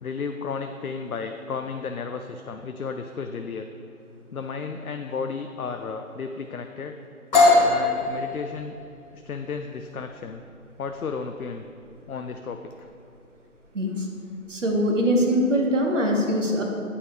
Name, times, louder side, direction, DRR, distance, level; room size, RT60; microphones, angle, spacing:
voice 1, 0.0-3.7 4.3-6.9 7.6-8.7 9.1-10.4 10.8-11.6 12.1-12.9, left 5 dB, 80° left, 6 dB, 0.6 m, -33 dB
sound 1, 7.3-15.0, left 2 dB, 30° left, 1.8 m, -25 dB
voice 2, 13.7-14.1 14.5-16.6, equal, 60° right, 1 dB, 1.5 m, -22 dB
8.3 x 5.4 x 4.9 m, 2.5 s
figure-of-eight pair, 155°, 43 cm